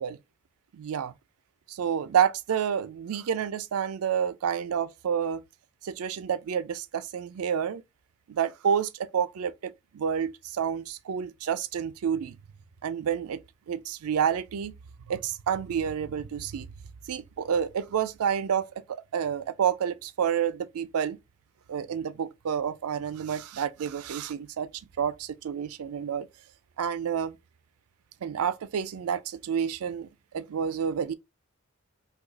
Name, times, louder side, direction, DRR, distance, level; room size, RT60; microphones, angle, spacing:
voice 1, 0.7-1.1 1.7-5.4 5.8-7.8 8.3-12.4 12.8-13.4 13.7-14.7 15.1-16.7 17.1-21.2 21.7-24.7 25.0-26.3 26.8-27.4 28.2-30.1 30.3-31.1, right 8 dB, 90° right, 0.4 m, -29 dB
2.7 x 2.3 x 3.8 m
head